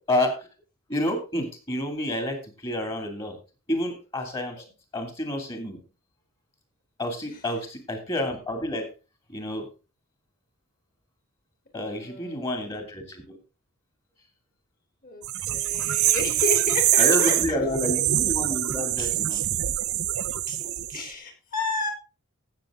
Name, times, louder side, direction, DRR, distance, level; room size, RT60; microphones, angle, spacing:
voice 1, 0.9-3.3 3.7-4.6 4.9-5.8 7.0-8.9 9.3-9.7 11.7-13.4 17.0-19.4, left 1 dB, 25° left, 5 dB, 2.6 m, -29 dB
voice 2, 11.7-12.7 15.0-17.6 19.0-19.5 20.4-20.6 20.9-21.9, left 3 dB, 40° left, 5 dB, 3.4 m, -33 dB
sound 1, 15.2-21.0, right 14 dB, 70° right, 0.7 m, -24 dB
17.0 x 7.0 x 3.8 m, 0.32 s
head